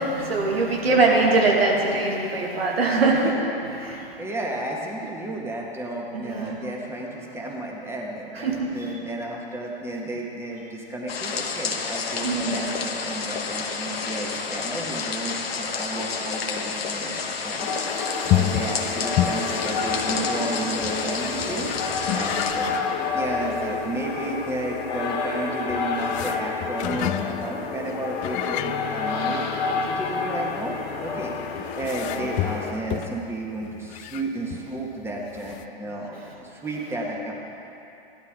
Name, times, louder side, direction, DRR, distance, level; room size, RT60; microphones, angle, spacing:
voice 1, 0.0-4.1 6.1-6.6 8.3-9.1 12.2-12.7 32.2-32.3 36.1-36.3, right 3 dB, 85° right, -1 dB, 2.2 m, -23 dB
voice 2, 4.2-17.8 18.3-21.7 22.1-22.8 23.1-31.3 31.8-37.3, right 1 dB, 10° right, -2 dB, 1.9 m, -32 dB
sound 1, 11.1-22.5, left 5 dB, 80° left, 1.3 m, -30 dB
sound 2, 17.6-32.7, left 4 dB, 50° left, 2.1 m, -30 dB
sound 3, 18.2-34.7 35.0-35.1 35.4-35.7, left 13 dB, 25° left, 0.4 m, -31 dB
16.0 x 12.0 x 3.9 m, 2.9 s
hypercardioid pair, 105°, 30 cm